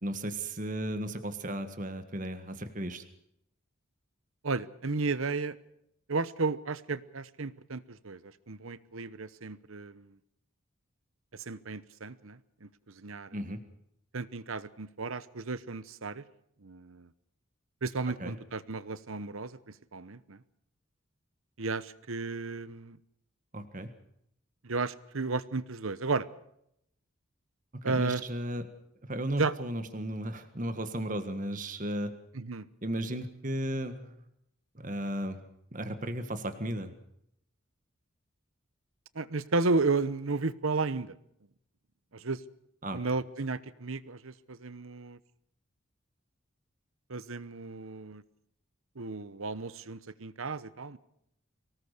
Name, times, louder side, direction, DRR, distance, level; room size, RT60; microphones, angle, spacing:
voice 1, 0.0-3.0 13.3-13.6 18.0-18.3 23.5-23.9 27.7-28.7 29.0-32.1 32.8-34.2 34.7-35.4 35.7-37.0 42.8-43.0, right 1 dB, 40° right, 9 dB, 1.6 m, -35 dB
voice 2, 4.4-5.6 6.1-10.1 11.3-13.3 14.1-16.2 16.6-17.1 17.8-19.6 19.9-20.4 21.6-23.0 24.6-26.3 27.8-28.2 29.4-29.5 32.3-32.7 39.1-41.1 42.1-42.4 42.9-45.2 47.1-48.2 49.0-51.0, right 3 dB, 80° right, 16 dB, 1.0 m, -33 dB
24.0 x 18.5 x 6.7 m, 0.75 s
head